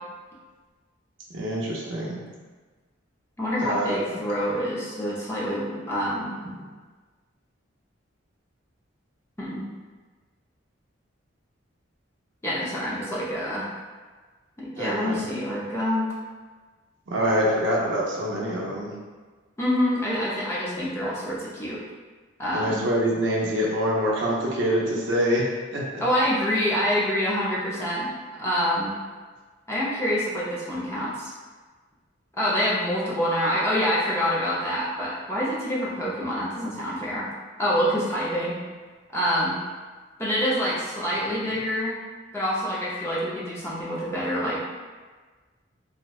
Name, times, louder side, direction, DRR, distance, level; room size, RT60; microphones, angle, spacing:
voice 1, 1.3-2.2 3.6-4.2 14.8-15.3 17.1-18.9 22.5-26.0 41.2-41.5, equal, 65° right, -3 dB, 0.5 m, -26 dB
voice 2, 3.4-6.7 9.4-9.6 12.4-13.7 14.6-16.1 19.6-21.8 22.4-22.8 26.0-28.1 28.4-28.9 29.7-31.3 32.4-37.3 37.6-38.6 39.1-39.6 40.2-42.0 42.3-44.6, equal, 15° left, -7 dB, 0.4 m, -26 dB
2.6 x 2.1 x 2.3 m, 1.4 s
head